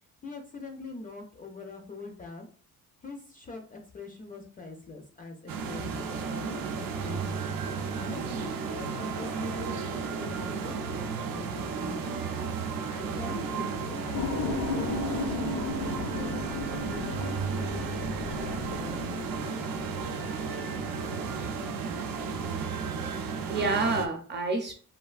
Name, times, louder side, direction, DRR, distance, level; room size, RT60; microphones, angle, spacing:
voice 1, 0.2-2.5 3.0-7.5 7.9-12.4 12.7-16.5 16.8-19.7, left 2 dB, 25° left, 0.3 m, -43 dB
sound 1, 5.5-24.1, right 5 dB, 80° right, 0.5 m, -33 dB
sound 2, 14.1-22.5, left 3 dB, 75° left, 0.6 m, -36 dB
voice 2, 23.0-24.7, right 3 dB, 30° right, 0.5 m, -29 dB
3.2 x 2.4 x 2.3 m
cardioid pair, 155°, 34 cm